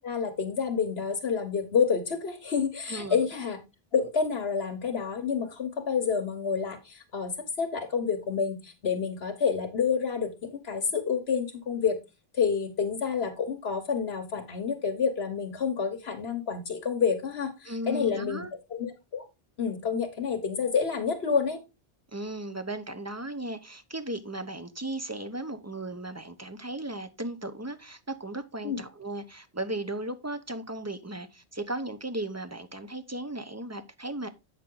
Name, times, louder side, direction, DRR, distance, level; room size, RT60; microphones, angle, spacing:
voice 1, 0.0-3.6 3.9-12.0 12.3-18.4 18.7-19.2 19.6-21.6 28.6-28.8, left 6 dB, 75° left, 1.3 m, -28 dB
voice 2, 2.9-3.2 17.7-18.5 22.1-34.3, right 1 dB, 20° right, 0.6 m, -36 dB
8.2 x 6.2 x 3.7 m
omnidirectional pair, 1.1 m